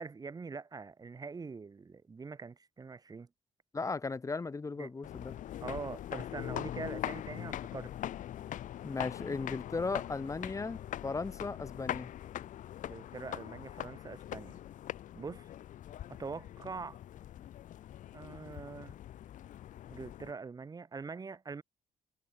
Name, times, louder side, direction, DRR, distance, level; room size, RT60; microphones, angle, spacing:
voice 1, 0.0-3.3 4.8-4.9 5.6-7.9 12.8-14.6 15.2-15.5 16.1-17.0 18.1-18.9 19.9-21.6, right 4 dB, 25° right, 1.8 m, -43 dB
voice 2, 3.7-5.3 8.8-12.1, left 4 dB, 25° left, 1.7 m, -36 dB
sound 1, 5.0-20.3, left 12 dB, 70° left, 4.4 m, -42 dB
cardioid pair, 100°, 14 cm